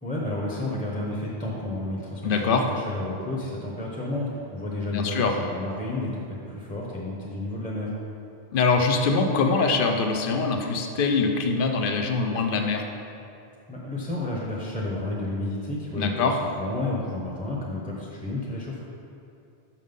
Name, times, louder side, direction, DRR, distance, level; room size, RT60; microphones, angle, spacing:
voice 1, 0.0-7.9 13.7-18.8, left 1 dB, 10° left, -4 dB, 0.8 m, -31 dB
voice 2, 2.2-2.6 4.9-5.3 8.5-12.8 16.0-16.4, left 4 dB, 55° left, 4 dB, 0.8 m, -23 dB
6.2 x 5.8 x 5.3 m, 2.7 s
omnidirectional pair, 1.1 m